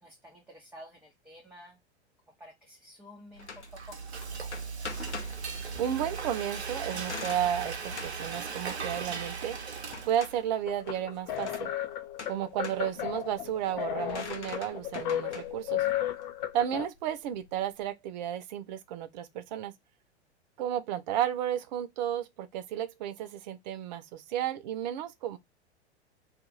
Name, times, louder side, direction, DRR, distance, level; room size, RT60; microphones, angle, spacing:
voice 1, 0.0-1.8 2.4-3.5 3.9-4.0, equal, 5° right, 0.9 m, -51 dB
sound 1, 3.4-17.9, left 4 dB, 85° left, 0.8 m, -46 dB
Frying (food), 3.4-10.5, right 5 dB, 75° right, 0.8 m, -38 dB
voice 2, 5.8-9.6 10.0-11.7 12.3-15.9 16.5-19.7 20.6-25.4, right 10 dB, 40° right, 0.5 m, -33 dB
sound 2, 10.7-16.9, left 12 dB, 45° left, 0.7 m, -34 dB
2.7 x 2.5 x 3.7 m
figure-of-eight pair, 95°, 34 cm